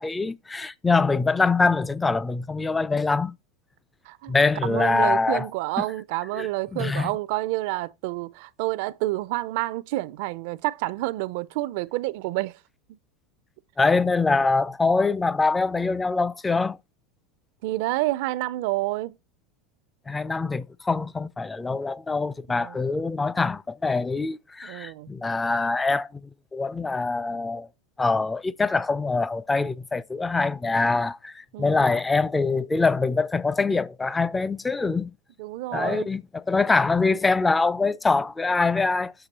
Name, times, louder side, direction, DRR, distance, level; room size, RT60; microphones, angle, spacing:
voice 1, 0.0-3.4 4.3-5.5 6.3-7.1 13.8-16.8 20.1-27.7 28.0-35.1 35.7-39.1, left 3 dB, 10° left, 0.3 m, -24 dB
voice 2, 4.6-12.6 12.9-13.0 17.6-19.2 22.5-22.8 24.6-25.1 31.5-31.9 35.4-36.1, right 18 dB, 60° right, 0.4 m, -29 dB
6.7 x 5.7 x 2.8 m
supercardioid pair, 145°, 0 cm